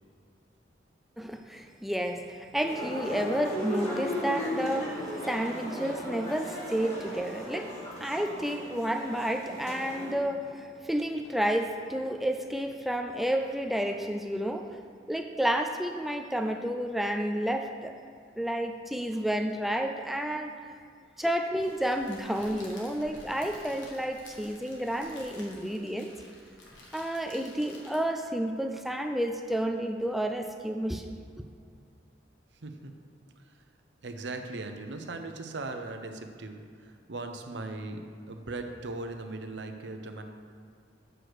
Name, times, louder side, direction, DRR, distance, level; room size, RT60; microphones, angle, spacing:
voice 1, 1.2-7.7 8.0-14.8 15.1-17.9 18.4-20.5 21.2-26.1 26.9-31.1, equal, ahead, 4 dB, 0.3 m, -31 dB
sound 1, 2.6-10.1, equal, 35° left, 1.8 m, -36 dB
Crackle, 21.6-28.3, left 1 dB, 85° left, 1.6 m, -51 dB
voice 2, 32.6-32.9 33.4-33.6 34.0-38.0 38.3-40.2, right 2 dB, 70° right, 5 dB, 0.7 m, -39 dB
7.6 x 4.9 x 6.3 m, 2.3 s
head